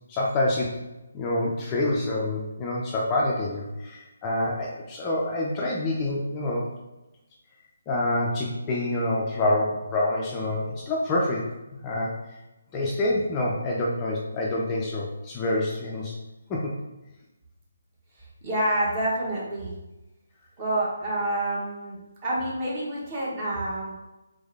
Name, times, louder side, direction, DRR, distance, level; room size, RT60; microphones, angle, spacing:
voice 1, 0.1-0.8 1.1-6.7 7.9-11.5 11.8-12.4 12.7-16.2 16.5-16.7, left 1 dB, 20° left, -3 dB, 0.5 m, -27 dB
voice 2, 18.2-19.7 20.6-23.9, right 1 dB, 25° right, -6 dB, 1.3 m, -28 dB
3.5 x 3.3 x 3.4 m, 1.0 s
figure-of-eight pair, 145°, 0 cm